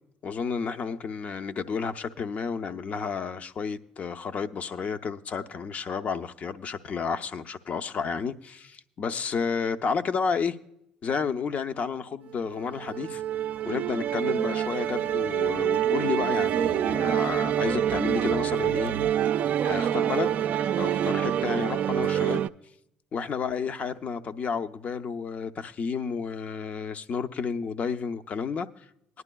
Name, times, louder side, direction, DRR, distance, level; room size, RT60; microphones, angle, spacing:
voice 1, 0.2-10.6 11.0-13.2 13.6-18.9 19.6-20.4 20.8-22.4 23.1-28.7, left 5 dB, 50° left, 0.6 m, -31 dB
Musical instrument, 12.4-22.5, right 10 dB, 60° right, 0.3 m, -26 dB
19.0 x 11.0 x 2.3 m
supercardioid pair, 70°, 3 cm